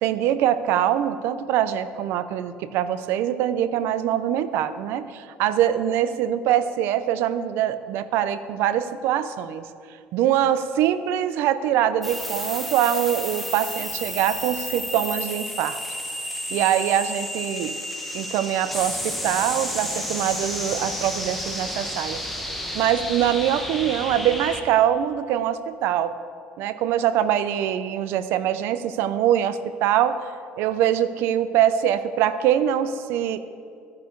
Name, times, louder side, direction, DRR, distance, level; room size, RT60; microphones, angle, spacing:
voice 1, 0.0-9.7 10.1-15.8 16.5-17.8 18.1-22.2 22.7-26.1 26.6-30.2 30.6-33.4, right 10 dB, 75° right, 13 dB, 0.6 m, -23 dB
sound 1, 12.0-24.6, left 1 dB, ahead, 1.4 m, -31 dB
13.0 x 9.6 x 4.6 m, 2.4 s
cardioid pair, 120°, 4 cm